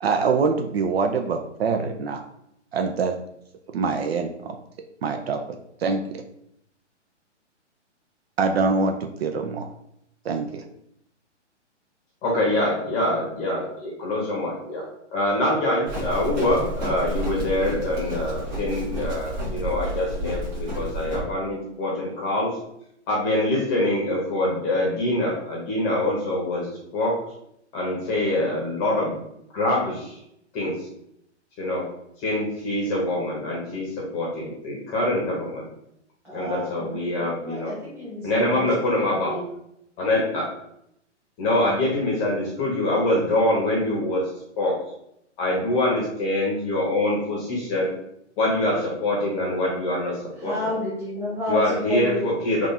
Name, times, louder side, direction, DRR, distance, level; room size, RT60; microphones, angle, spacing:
voice 1, 0.0-2.2 2.7-3.2 3.7-4.6 5.0-6.2 8.4-9.7 10.2-10.6, right 4 dB, 60° right, 5 dB, 0.5 m, -24 dB
voice 2, 12.2-22.5 23.1-27.1 27.7-29.2 29.5-30.1 30.5-30.7 31.6-31.9 32.2-35.7 36.3-37.7 38.2-39.3 40.0-40.5 41.4-44.2 44.6-44.8 45.4-47.9 48.4-50.1 50.4-50.5 51.5-52.7, left 1 dB, 20° left, -3 dB, 0.8 m, -24 dB
Livestock farm animals working animals, 15.9-21.2, right 1 dB, 40° right, 1.4 m, -30 dB
voice 3, 36.2-39.5 50.4-52.2, left 1 dB, 5° right, -8 dB, 1.4 m, -31 dB
3.4 x 2.4 x 4.0 m, 0.76 s
hypercardioid pair, 145°, 36 cm